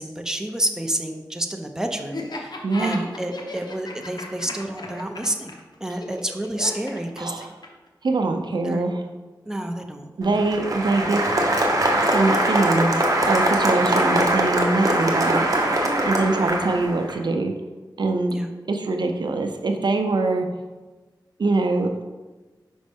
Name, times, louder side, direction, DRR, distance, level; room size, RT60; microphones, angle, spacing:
voice 1, 0.0-5.6 5.8-7.5 8.6-8.8 9.5-10.1 16.3-16.6 18.3-18.5, right 1 dB, 5° right, 4 dB, 0.6 m, -29 dB
Laughter, 2.1-7.9, left 2 dB, 65° left, 0.9 m, -35 dB
voice 2, 2.6-3.0 7.2-7.5 8.0-9.0 10.2-11.2 12.1-12.9 13.3-15.5 16.1-17.5 18.0-18.4 18.7-20.5 21.4-21.9, right 3 dB, 70° right, 5 dB, 0.5 m, -23 dB
Applause, 10.2-17.1, right 1 dB, 45° right, 0.9 m, -22 dB
5.2 x 5.2 x 3.5 m, 1.2 s
wide cardioid pair, 60°, 8 cm